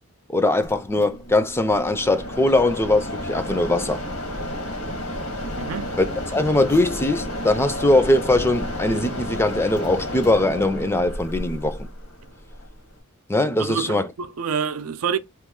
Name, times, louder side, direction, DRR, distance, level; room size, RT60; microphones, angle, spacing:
voice 1, 0.3-4.0 6.0-6.1 6.3-11.9 13.3-14.1, left 2 dB, 10° left, 0.4 m, -21 dB
Mechanisms, 0.6-13.0, left 1 dB, 80° left, 1.2 m, -32 dB
voice 2, 5.6-5.9 13.6-15.2, right 6 dB, 75° right, 0.5 m, -27 dB
3.1 x 2.9 x 3.6 m
head